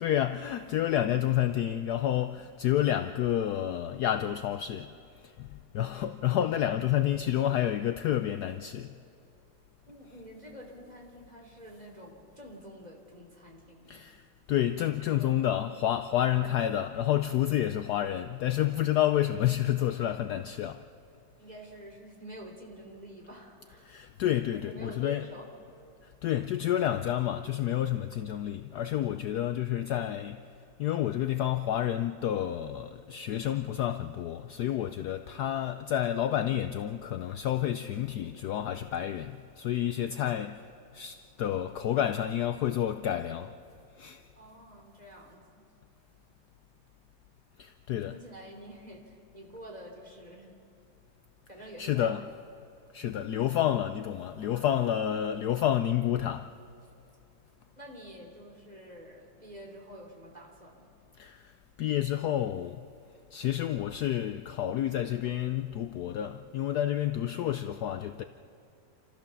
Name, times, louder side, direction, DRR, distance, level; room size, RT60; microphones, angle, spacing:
voice 1, 0.0-4.9 5.2-8.9 13.9-14.2 14.5-20.8 23.9-25.2 26.0-30.5 30.8-43.5 44.0-44.2 47.6-48.2 51.8-52.2 52.9-56.5 61.2-61.5 61.8-62.9 63.3-68.2, left 11 dB, 70° left, 1.0 m, -29 dB
voice 2, 9.9-14.2 14.9-15.3 16.2-16.6 21.4-24.1 24.5-25.8 44.4-45.6 47.9-50.6 51.5-52.3 54.4-54.9 57.7-60.9, right 1 dB, 20° right, 3.3 m, -48 dB
28.0 x 14.5 x 7.0 m
omnidirectional pair, 2.0 m